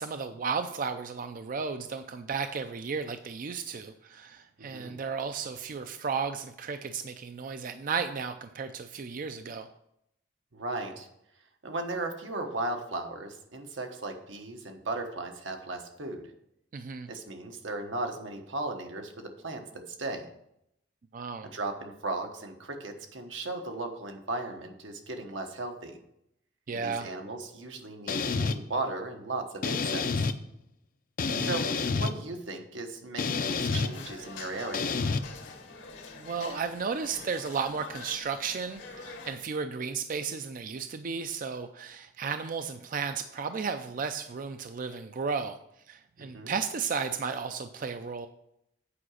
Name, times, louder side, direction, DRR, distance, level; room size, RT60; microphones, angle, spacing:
voice 1, 0.0-9.7 16.7-17.1 21.1-21.5 26.7-27.1 31.3-31.6 36.2-45.6 45.9-48.3, right 5 dB, 45° right, 8 dB, 0.4 m, -34 dB
voice 2, 4.6-4.9 10.5-11.1 11.6-16.3 17.1-20.3 21.5-26.0 26.7-30.3 31.4-34.9 46.2-46.5, right 2 dB, 85° right, 4 dB, 1.2 m, -36 dB
sound 1, 28.1-28.6 29.6-30.3 31.2-32.1 33.2-33.9 34.7-35.2, left 4 dB, 50° left, 0.5 m, -28 dB
sound 2, 33.4-39.4, left 4 dB, 85° left, 2.0 m, -45 dB
8.6 x 5.0 x 6.3 m, 0.78 s
head